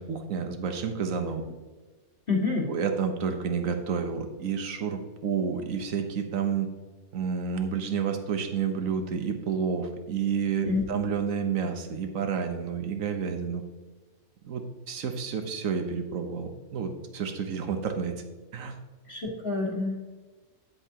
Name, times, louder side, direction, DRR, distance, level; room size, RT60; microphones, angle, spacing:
voice 1, 0.0-1.4 2.7-6.7 7.1-13.6 14.4-18.1 18.5-18.7, right 6 dB, 65° right, 6 dB, 1.4 m, -30 dB
voice 2, 2.3-2.7 10.7-10.8 19.1-20.1, left 3 dB, 40° left, -4 dB, 2.1 m, -28 dB
10.0 x 8.3 x 3.0 m, 1.2 s
omnidirectional pair, 1.5 m